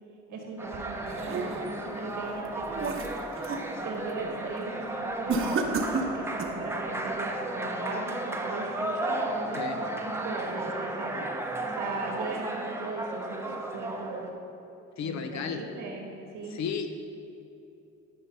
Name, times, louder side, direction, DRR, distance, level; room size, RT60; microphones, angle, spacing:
voice 1, 0.3-3.0 3.8-9.7 10.1-11.2 11.8-14.3 15.0-16.6, right 3 dB, 80° right, 0 dB, 1.7 m, -38 dB
sound 1, 0.6-14.3, right 2 dB, 10° right, 0.8 m, -34 dB
sound 2, 0.7-1.9 2.4-3.7 4.1-4.4 5.3-6.7, right 3 dB, 45° right, 1.0 m, -32 dB
voice 2, 15.0-15.6 16.5-16.9, left 6 dB, 65° left, 7 dB, 0.8 m, -33 dB
11.0 x 4.8 x 5.5 m, 2.8 s
cardioid pair, 90°, 30 cm